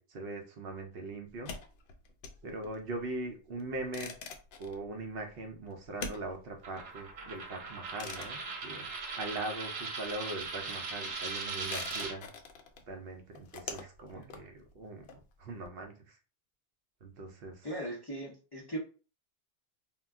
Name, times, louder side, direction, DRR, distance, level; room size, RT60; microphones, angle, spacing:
voice 1, 0.0-1.6 2.4-4.1 4.6-8.9 9.2-12.3 12.9-16.2 17.0-17.7, right 2 dB, 65° right, 3 dB, 0.7 m, -41 dB
sound 1, 1.3-9.6 9.9-15.7, left 5 dB, 65° left, 0.7 m, -47 dB
Coin (dropping), 6.6-12.1, right 4 dB, 90° right, 1.0 m, -39 dB
voice 2, 17.6-18.8, right 1 dB, 30° left, -4 dB, 0.5 m, -39 dB
2.2 x 2.1 x 3.5 m, 0.35 s
omnidirectional pair, 1.2 m